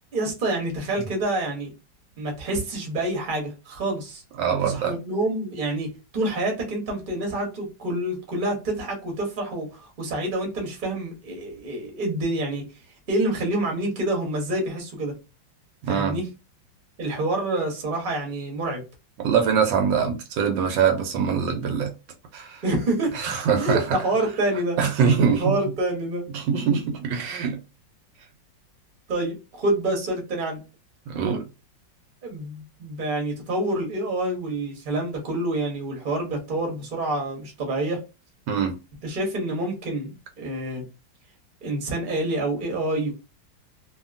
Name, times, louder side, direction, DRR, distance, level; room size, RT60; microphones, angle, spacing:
voice 1, 0.1-1.7 2.2-4.2 4.6-12.6 13.1-15.1 15.9-16.3 17.0-18.8 22.6-23.2 23.6-24.8 25.4-26.2 29.1-30.6 32.2-38.0 39.0-40.8 41.6-43.2, right 1 dB, 35° right, 0.9 m, -27 dB
voice 2, 4.4-4.9 15.8-16.2 19.2-21.9 22.3-22.6 23.1-24.0 24.8-25.6 26.3-27.6 31.1-31.4 38.5-38.8, right 6 dB, 80° right, 1.3 m, -23 dB
2.8 x 2.6 x 2.4 m
omnidirectional pair, 2.1 m